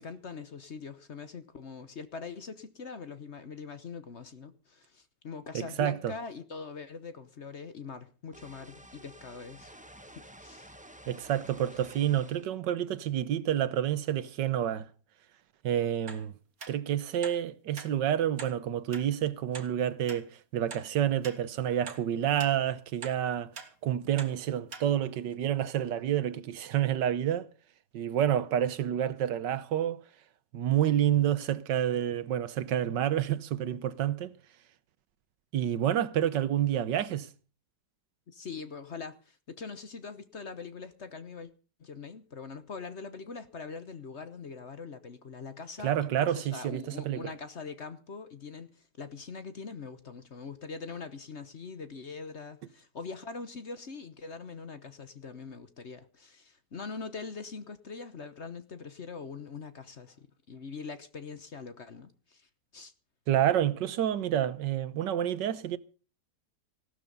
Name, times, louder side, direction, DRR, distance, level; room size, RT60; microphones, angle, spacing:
voice 1, 0.0-9.7 10.0-10.7 38.3-41.5 41.8-45.9 46.2-62.9, left 5 dB, 45° left, 1.1 m, -43 dB
voice 2, 5.5-6.1 11.1-14.9 15.6-16.3 16.7-23.5 23.8-27.5 27.9-30.0 30.5-34.4 35.5-37.3 45.8-47.3 63.3-65.8, right 10 dB, 80° right, 1.6 m, -29 dB
sound 1, 8.3-12.5, right 1 dB, 5° right, 1.0 m, -51 dB
sound 2, 16.1-16.2 16.6-16.7 17.2-17.4 17.8-17.9 18.4-18.5 18.9-19.1 19.5-19.7 20.1-20.2 20.7-20.9 21.2-21.4 21.9-22.0 22.4-22.5 23.0-23.2 23.5-23.7 24.2-24.3 24.7-24.9 25.3-25.4, right 5 dB, 50° right, 2.1 m, -43 dB
16.5 x 12.5 x 5.4 m
omnidirectional pair, 1.9 m